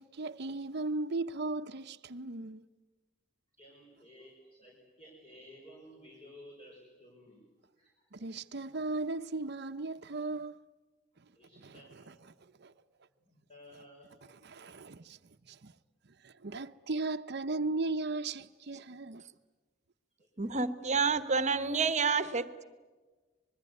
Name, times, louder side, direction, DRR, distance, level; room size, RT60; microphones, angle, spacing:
voice 1, 0.0-2.6 8.1-10.6 11.2-11.3 11.6-11.8 12.1-12.2 12.4-12.7 14.3-15.2 15.5-15.7 16.2-19.2, right 3 dB, 60° right, 0.8 m, -37 dB
voice 2, 3.5-7.5 7.8-8.4 11.3-12.1 13.2-14.1 20.2-20.3, equal, 30° left, 5.8 m, -55 dB
voice 3, 20.4-22.6, right 5 dB, 40° right, 1.2 m, -29 dB
26.0 x 21.5 x 9.5 m
head